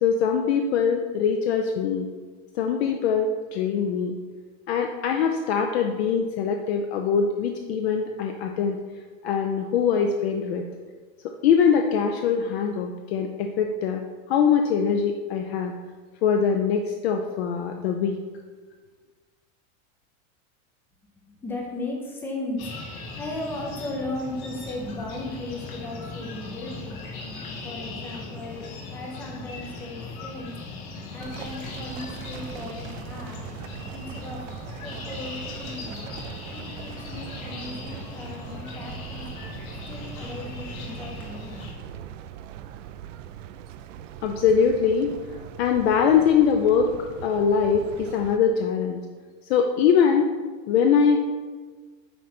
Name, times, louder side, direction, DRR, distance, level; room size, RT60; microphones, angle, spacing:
voice 1, 0.0-2.1 2.5-4.2 4.7-8.8 9.2-10.6 11.2-14.0 14.3-15.7 16.2-18.2 44.2-45.1 45.6-46.9 47.2-49.1 49.5-50.3 50.7-51.2, left 6 dB, 50° left, 4 dB, 0.6 m, -22 dB
voice 2, 21.2-22.7 23.2-27.0 27.6-30.6 31.1-33.4 33.9-36.0 36.5-39.2 39.9-42.0, left 2 dB, 5° left, 0 dB, 0.4 m, -36 dB
sound 1, 22.6-41.7, left 3 dB, 85° left, 2.2 m, -38 dB
sound 2, 31.2-48.4, right 10 dB, 65° right, 0.5 m, -41 dB
9.3 x 3.2 x 5.9 m, 1.4 s
supercardioid pair, 175°, 41 cm